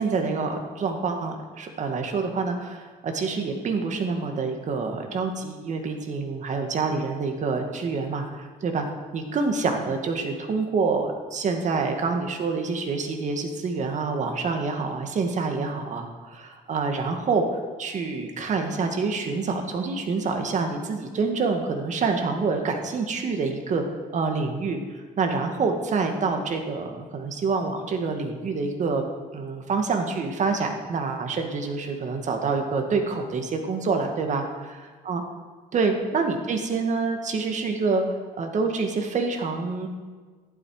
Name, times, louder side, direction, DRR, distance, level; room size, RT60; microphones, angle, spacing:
voice 1, 0.0-8.9 9.1-17.5 17.8-23.8 24.1-24.8 25.2-29.1 29.3-34.5 35.0-35.2 35.7-39.9, right 4 dB, 45° right, 4 dB, 1.9 m, -27 dB
14.5 x 11.5 x 4.9 m, 1.4 s
cardioid pair, 110°, 17 cm